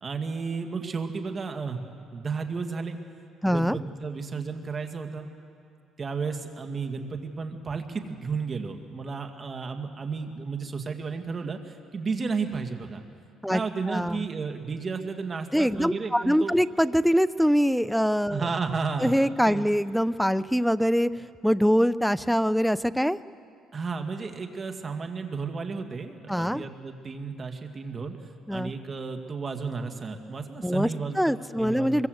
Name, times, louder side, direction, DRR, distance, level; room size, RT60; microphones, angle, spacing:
voice 1, 0.0-1.8 2.1-3.0 3.4-5.3 6.0-13.0 13.5-16.6 18.3-19.6 23.7-28.1 28.5-32.1, right 4 dB, 30° right, 5 dB, 2.1 m, -33 dB
voice 2, 3.4-3.8 13.4-13.6 13.9-14.3 15.5-18.4 19.0-21.1 21.4-23.2 26.3-26.6 28.5-28.7 30.6-30.9 31.2-32.1, equal, ahead, 15 dB, 0.5 m, -23 dB
25.0 x 22.5 x 8.0 m, 2.3 s
cardioid pair, 120°, 0 cm